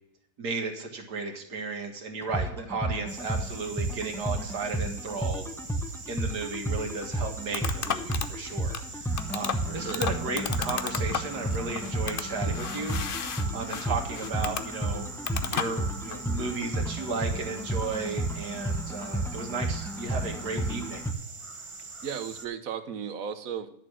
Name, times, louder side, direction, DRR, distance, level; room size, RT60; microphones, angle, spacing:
voice 1, 0.4-5.5 6.1-15.1 15.5-21.1, right 4 dB, 85° right, 3 dB, 2.2 m, -34 dB
sound 1, 2.2-21.1, right 1 dB, 5° left, 0.4 m, -32 dB
sound 2, 3.1-22.5, right 3 dB, 25° right, 0.7 m, -43 dB
sound 3, 6.8-16.3, left 7 dB, 55° left, 0.6 m, -35 dB
voice 2, 9.7-10.0 22.0-23.7, right 8 dB, 60° right, 10 dB, 1.3 m, -35 dB
11.0 x 6.8 x 6.2 m, 0.76 s
omnidirectional pair, 1.7 m